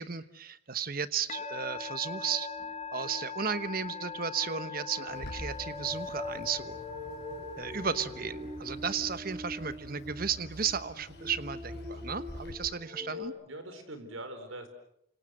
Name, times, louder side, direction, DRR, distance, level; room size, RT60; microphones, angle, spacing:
voice 1, 0.0-2.5 2.9-6.8 7.6-13.3, right 7 dB, 45° right, 13 dB, 1.1 m, -34 dB
Musical instrument, 1.3-8.9, left 6 dB, 35° left, 1.7 m, -42 dB
Shakuhachi flute play, 1.3-13.3, left 1 dB, 25° right, 2.7 m, -44 dB
Bird, 5.1-12.5, equal, 55° left, 5.4 m, -47 dB
voice 2, 13.0-14.7, right 1 dB, 90° right, 8 dB, 4.6 m, -43 dB
29.0 x 26.0 x 6.6 m, 0.73 s
head